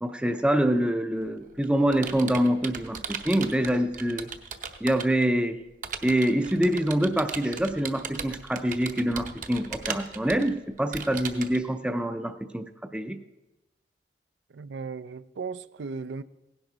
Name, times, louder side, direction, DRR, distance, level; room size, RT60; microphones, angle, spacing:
voice 1, 0.0-4.3 4.8-5.6 6.0-12.7 12.9-13.2, right 1 dB, 5° right, 0.4 m, -25 dB
Computer keyboard, 1.2-5.2 5.8-11.6, right 6 dB, 50° right, 0.8 m, -37 dB
voice 2, 14.5-16.2, right 4 dB, 85° right, 0.4 m, -36 dB
16.5 x 11.0 x 3.9 m
head